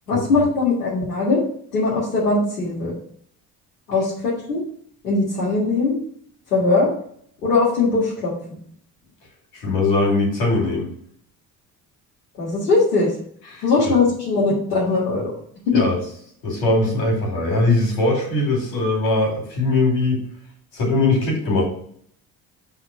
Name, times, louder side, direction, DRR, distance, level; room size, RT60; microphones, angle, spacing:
voice 1, 0.1-1.4 1.7-2.9 3.9-4.6 5.0-6.0 6.5-6.9 7.4-8.3 12.4-13.1 13.6-15.3 15.7-15.8, left 3 dB, 90° left, -9 dB, 1.9 m, -20 dB
voice 2, 9.5-10.9 13.5-13.6 15.7-16.0 16.4-20.2 20.7-21.6, left 2 dB, 70° left, -1 dB, 2.8 m, -20 dB
5.8 x 3.8 x 5.7 m, 0.62 s
hypercardioid pair, 55°, 45 cm